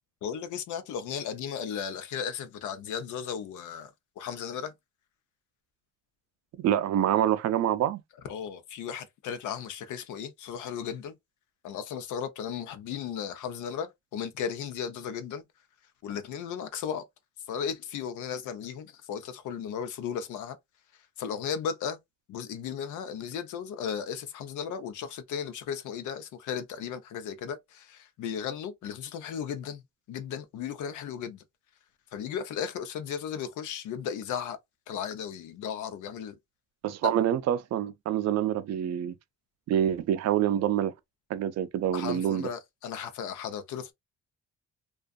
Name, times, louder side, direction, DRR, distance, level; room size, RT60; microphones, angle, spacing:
voice 1, 0.2-3.9 4.2-4.7 8.2-11.1 11.6-15.5 16.0-17.0 17.5-20.6 21.2-22.0 22.3-29.8 30.1-31.4 32.1-34.6 34.9-36.4 37.0-37.1 41.9-43.9, left 8 dB, 80° left, 0.6 m, -35 dB
voice 2, 6.6-8.0 36.8-39.1 39.7-40.9 41.3-42.5, right 10 dB, 60° right, 0.5 m, -26 dB
2.5 x 2.3 x 2.3 m
cardioid pair, 90°, 30 cm